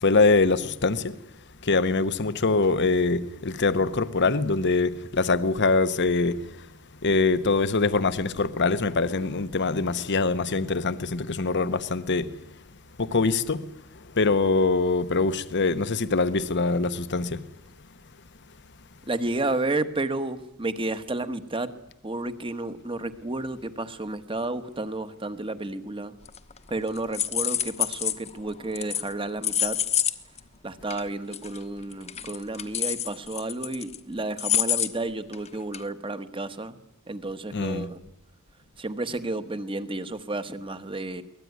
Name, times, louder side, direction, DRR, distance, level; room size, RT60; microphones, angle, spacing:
voice 1, 0.0-1.1 1.6-6.5 7.0-12.3 13.0-13.7 14.1-17.4 37.5-37.9, left 3 dB, 55° left, 1.0 m, -23 dB
voice 2, 19.1-21.7 22.0-26.2 26.7-29.8 30.6-36.8 37.1-38.0 38.8-41.2, right 2 dB, 25° right, 1.3 m, -31 dB
sound 1, 26.3-26.7 27.0-28.3 28.8-29.1 29.4-30.1 30.4-30.5 30.9-31.0 31.3-31.6 31.9-34.0 34.4-34.9 35.3-35.5 35.7-35.8, left 10 dB, 30° left, 1.1 m, -26 dB
23.5 x 19.0 x 9.5 m
head